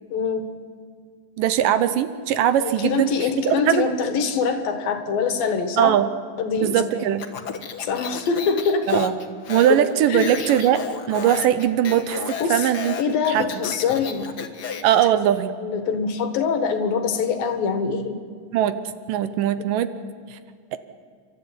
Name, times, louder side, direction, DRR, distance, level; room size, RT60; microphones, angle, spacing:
voice 1, 0.1-0.5 2.6-6.0 6.4-7.1 7.8-9.1 9.7-10.3 12.4-12.7 13.0-14.3 15.6-18.2, left 5 dB, 75° left, 9 dB, 3.3 m, -24 dB
voice 2, 1.4-3.1 3.4-3.9 5.8-6.1 6.6-7.2 8.9-9.1 9.5-12.9 13.3-13.5 14.8-15.5 18.5-18.8 19.1-19.9 20.3-20.4 20.7-20.8, right 10 dB, 75° right, 12 dB, 2.4 m, -20 dB
Speech, 7.2-15.0, left 6 dB, 55° left, 1.1 m, -33 dB
30.0 x 13.0 x 9.8 m, 2.1 s
omnidirectional pair, 4.1 m